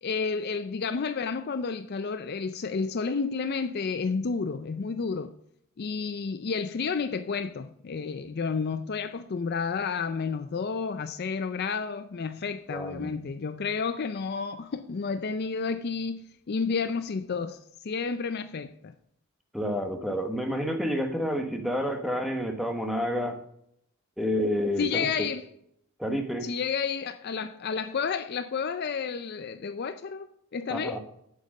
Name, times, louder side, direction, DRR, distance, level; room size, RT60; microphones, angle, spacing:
voice 1, 0.0-5.3 5.8-17.6 17.8-18.9 24.8-25.4 26.4-31.0, left 5 dB, 45° left, 0.4 m, -31 dB
voice 2, 12.7-13.1 19.5-23.4 24.2-25.3 26.0-26.5 30.7-31.0, equal, ahead, 1.1 m, -29 dB
7.9 x 7.3 x 6.4 m
head